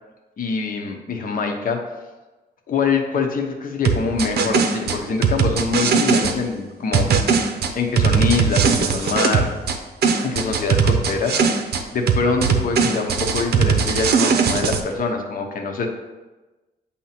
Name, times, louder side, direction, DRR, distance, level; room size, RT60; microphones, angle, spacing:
voice 1, 0.4-1.8 2.7-7.4 7.7-9.5 10.2-15.9, left 4 dB, 50° left, 3 dB, 0.9 m, -24 dB
sound 1, 3.8-6.3 6.9-9.8 10.0-11.8 12.1-14.8, right 6 dB, 65° right, 0.7 m, -19 dB
8.3 x 2.9 x 5.8 m, 1.2 s
cardioid pair, 150°, 18 cm